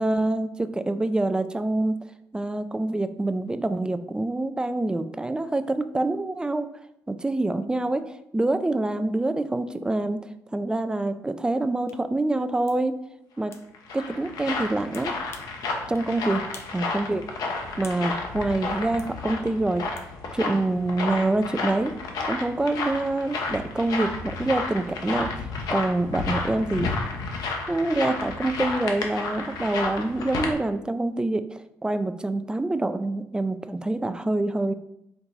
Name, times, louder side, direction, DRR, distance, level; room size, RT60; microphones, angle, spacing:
voice 1, 0.0-1.9 2.3-6.7 7.1-10.2 10.5-13.0 13.4-13.5 13.9-15.1 15.9-16.4 16.7-17.2 17.8-19.8 20.3-21.9 22.3-25.3 25.7-26.9 27.7-31.4 31.8-34.7, right 2 dB, 10° right, 11 dB, 0.3 m, -26 dB
sound 1, 11.9-12.0 12.7-12.8 13.5-13.7 14.9-15.6 15.9-16.1 16.5-16.8 17.1-18.1 19.0-19.1 20.0-20.1, left 4 dB, 40° left, 0.6 m, -47 dB
sound 2, 13.5-30.5, left 3 dB, 70° left, 0.8 m, -32 dB
4.5 x 2.6 x 3.9 m, 0.79 s
supercardioid pair, 75°, 7 cm